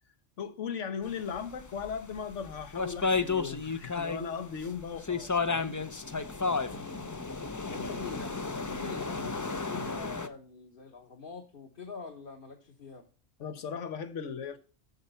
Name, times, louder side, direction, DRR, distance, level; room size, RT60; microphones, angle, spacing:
voice 1, 0.4-5.8 13.4-14.6, left 6 dB, 85° left, 1.3 m, -37 dB
sound 1, 1.4-4.2 4.6-10.3, left 4 dB, 25° left, 0.4 m, -32 dB
voice 2, 6.7-7.2 7.6-13.1, left 5 dB, 50° left, 1.3 m, -45 dB
7.9 x 7.0 x 5.4 m
omnidirectional pair, 1.2 m